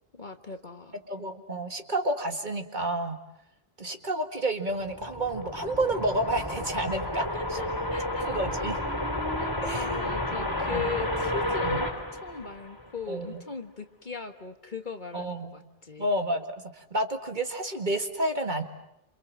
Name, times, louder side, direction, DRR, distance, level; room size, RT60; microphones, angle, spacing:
voice 1, 0.2-1.0 7.1-8.3 9.4-16.1, left 5 dB, 45° left, 7 dB, 1.7 m, -39 dB
voice 2, 1.1-3.2 3.8-7.3 7.5-7.6 8.2-8.8 9.6-9.9 10.6-10.9 11.6-11.8 13.1-13.4 15.1-15.5 16.0-16.5 16.7-18.6, right 1 dB, 40° right, 5 dB, 2.1 m, -30 dB
sound 1, 4.7-13.0, left 1 dB, 15° left, 3.6 m, -31 dB
28.5 x 27.5 x 7.5 m, 0.81 s
omnidirectional pair, 1.2 m